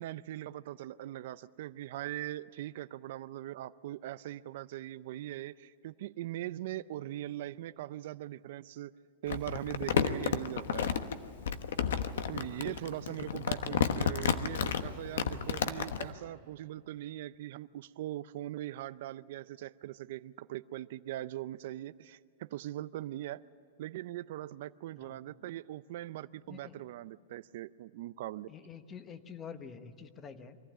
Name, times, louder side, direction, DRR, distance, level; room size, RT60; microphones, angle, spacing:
voice 1, 0.0-8.9 9.2-10.9 12.3-23.4 23.8-28.5, right 14 dB, 55° right, 14 dB, 0.5 m, -41 dB
Crumpling crinkling, 9.3-16.1, left 7 dB, 85° left, 1.1 m, -31 dB
voice 2, 12.6-14.1 15.0-15.3 25.0-25.5 26.4-26.8 28.5-30.6, left 6 dB, 20° left, 10 dB, 1.1 m, -49 dB
23.5 x 15.0 x 8.9 m, 2.5 s
supercardioid pair, 160°, 0 cm